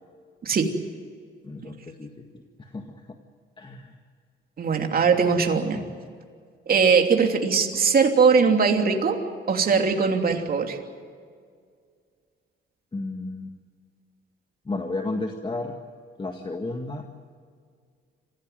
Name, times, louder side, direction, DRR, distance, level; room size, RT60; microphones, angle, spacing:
voice 1, 1.4-3.2 3.6-3.9 12.9-13.5 14.7-15.8 16.2-17.1, left 2 dB, 25° left, 4 dB, 1.9 m, -33 dB
voice 2, 4.6-5.8 6.7-9.2 9.5-10.8, right 5 dB, 50° right, 3 dB, 3.0 m, -20 dB
26.5 x 16.0 x 9.2 m, 2.1 s
cardioid pair, 90°, 20 cm